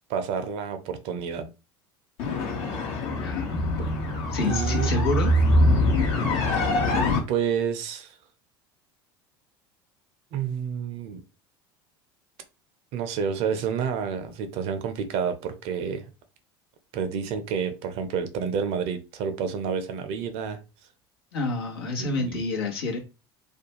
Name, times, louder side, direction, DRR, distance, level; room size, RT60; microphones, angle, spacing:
voice 1, 0.1-1.5 4.4-4.9 7.3-8.2 10.3-11.2 12.9-16.1 16.9-20.6 22.0-22.4, right 7 dB, 60° right, 0.6 m, -29 dB
sound 1, 2.2-7.2, left 1 dB, 60° left, 0.8 m, -23 dB
voice 2, 3.2-3.6 4.3-5.3 21.3-23.0, left 3 dB, 80° left, 0.9 m, -28 dB
2.5 x 2.2 x 2.9 m
hypercardioid pair, 75°, 12 cm